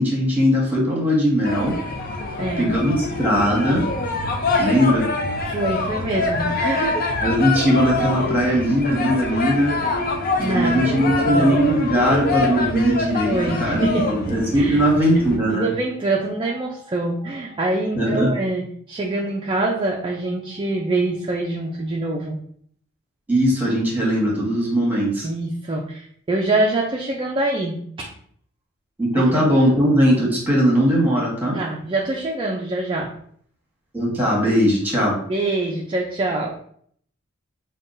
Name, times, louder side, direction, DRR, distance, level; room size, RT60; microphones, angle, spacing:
voice 1, 0.0-1.7 2.6-3.8 4.6-5.1 7.2-9.7 10.4-15.7 18.0-18.3 23.3-25.3 29.0-31.6 33.9-35.2, equal, 10° right, -3 dB, 1.2 m, -19 dB
sound 1, 1.4-15.4, left 3 dB, 45° left, 0.6 m, -25 dB
voice 2, 2.4-2.7 5.4-7.1 10.4-11.6 13.3-14.2 14.5-14.8 15.5-22.4 25.2-28.1 29.2-29.3 31.5-33.1 35.3-36.5, right 2 dB, 25° right, -1 dB, 0.4 m, -25 dB
5.3 x 2.3 x 2.5 m, 0.62 s
head